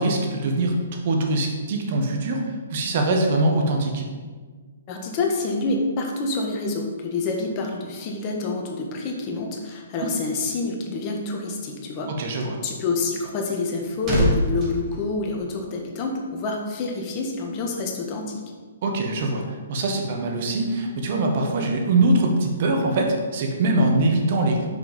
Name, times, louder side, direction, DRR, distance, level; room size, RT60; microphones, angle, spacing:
voice 1, 0.0-4.0 12.1-12.6 18.8-24.7, right 2 dB, 50° right, 2 dB, 1.4 m, -23 dB
voice 2, 4.9-12.1 12.6-18.4, left 3 dB, 35° left, 1 dB, 1.4 m, -27 dB
sound 1, 13.5-16.0 16.3-16.5, equal, 30° right, 2.2 m, -26 dB
6.4 x 4.9 x 5.2 m, 1.5 s
hypercardioid pair, 135°, 0 cm